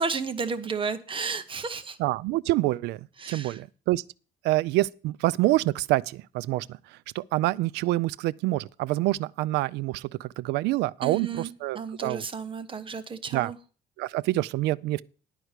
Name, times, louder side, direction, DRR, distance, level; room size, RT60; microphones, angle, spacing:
voice 1, 0.0-2.0 3.2-3.6 11.0-13.6, right 5 dB, 30° right, 1.0 m, -32 dB
voice 2, 2.0-4.0 4.4-12.2 13.3-13.5 14.0-15.0, right 17 dB, 85° right, 0.4 m, -27 dB
11.0 x 4.7 x 8.2 m
cardioid pair, 110°, 17 cm